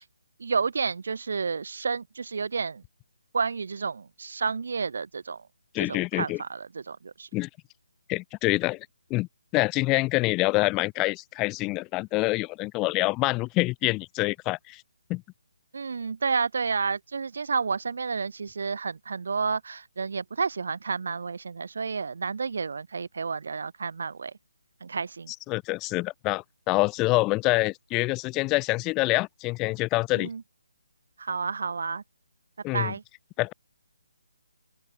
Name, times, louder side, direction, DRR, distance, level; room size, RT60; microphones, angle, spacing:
voice 1, 0.4-2.8 3.3-5.4 5.8-7.3 15.7-24.3 24.8-25.3 30.1-30.4 31.2-32.0 32.7-33.0, right 5 dB, 60° right, 4.7 m, -30 dB
voice 2, 5.7-6.4 7.3-7.5 8.1-9.3 9.5-14.8 15.1-15.2 25.5-30.3 32.6-32.9 33.4-33.5, left 22 dB, 15° left, 1.3 m, -26 dB
open air
figure-of-eight pair, 155°, 0 cm